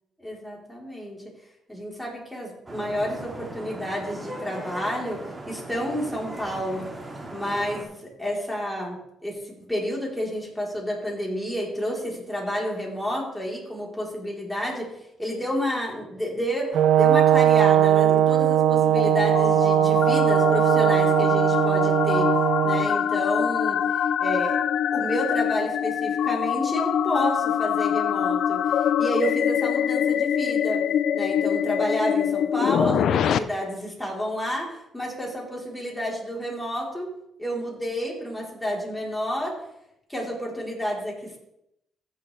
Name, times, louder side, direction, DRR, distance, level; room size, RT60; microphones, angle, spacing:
voice 1, 0.2-1.2 1.7-6.9 7.3-22.3 22.6-24.6 24.9-30.8 31.1-37.1 37.4-39.5 40.1-41.4, equal, 5° left, -4 dB, 4.0 m, -30 dB
Vehicle horn car horn honking / Traffic noise roadway noise, 2.7-7.8, right 1 dB, 25° right, 2.1 m, -38 dB
Brass instrument, 16.7-22.9, right 11 dB, 75° right, 0.6 m, -19 dB
sound 1, 18.3-33.4, left 9 dB, 70° left, 0.4 m, -25 dB
14.5 x 6.6 x 3.4 m, 0.81 s
cardioid pair, 90°, 0 cm